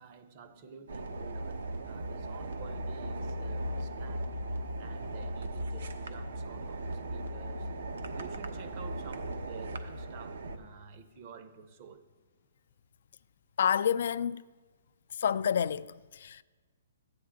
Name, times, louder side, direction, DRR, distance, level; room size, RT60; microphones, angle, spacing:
voice 1, 0.0-4.3 4.8-7.7 8.1-12.1, right 6 dB, 30° right, 0.7 m, -51 dB
sound 1, 0.9-10.6, right 1 dB, 80° right, 1.1 m, -37 dB
voice 2, 13.6-14.4 15.2-16.4, left 8 dB, 55° left, 0.3 m, -29 dB
14.0 x 9.5 x 3.8 m
hypercardioid pair, 165°, 0 cm